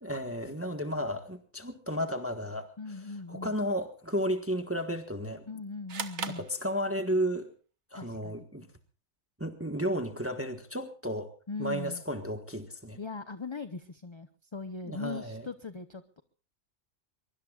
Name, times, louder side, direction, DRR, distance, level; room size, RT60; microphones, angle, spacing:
voice 1, 0.0-2.7 3.3-5.4 6.4-7.5 7.9-8.7 9.4-11.3 11.6-13.0 14.9-15.5, equal, 10° right, 1.4 m, -33 dB
voice 2, 2.8-3.6 5.5-6.5 7.9-8.4 11.5-12.0 13.0-16.0, left 4 dB, 25° left, 0.7 m, -40 dB
sound 1, 5.9-7.3, right 6 dB, 60° right, 1.5 m, -39 dB
23.5 x 23.0 x 2.4 m
omnidirectional pair, 1.4 m